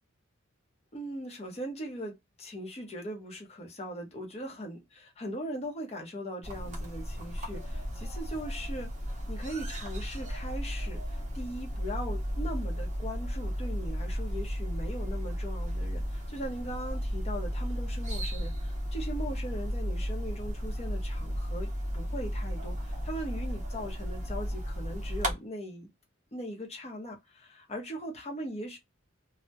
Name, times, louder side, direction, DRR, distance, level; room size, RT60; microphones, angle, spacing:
voice 1, 0.9-8.9 9.3-25.9 26.3-28.8, equal, 30° left, 0.7 m, -40 dB
sound 1, 6.4-25.3, equal, 35° right, 0.7 m, -34 dB
2.2 x 2.0 x 2.7 m
head